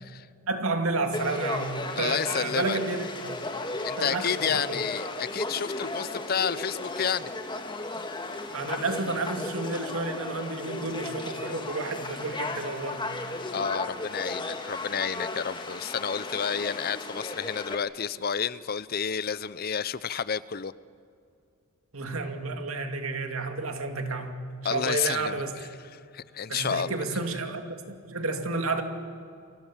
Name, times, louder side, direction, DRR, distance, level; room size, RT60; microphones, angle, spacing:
voice 1, 0.5-3.4 4.0-4.8 8.5-13.1 21.9-24.4 24.7-25.5 26.5-28.8, right 3 dB, 75° right, 5 dB, 2.5 m, -31 dB
Conversation / Crowd, 1.1-17.7, left 2 dB, 20° left, 1.9 m, -35 dB
voice 2, 2.0-2.8 3.8-7.3 13.5-20.7 24.6-27.0, left 7 dB, 45° left, 17 dB, 0.6 m, -30 dB
29.0 x 25.0 x 7.3 m, 2.4 s
head